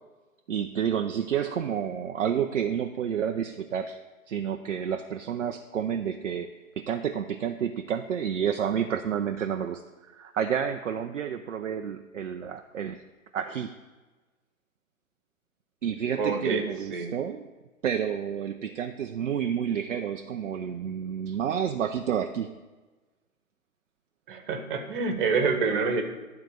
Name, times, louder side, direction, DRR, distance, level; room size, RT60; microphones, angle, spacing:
voice 1, 0.5-4.0 4.3-6.5 6.8-9.8 10.1-13.0 13.3-13.8 15.8-17.5 17.8-22.6, right 8 dB, 60° right, 6 dB, 0.6 m, -30 dB
voice 2, 16.2-17.1 24.3-26.0, right 4 dB, 35° right, 5 dB, 1.4 m, -27 dB
11.5 x 4.1 x 6.5 m, 1.3 s
figure-of-eight pair, 125°, 42 cm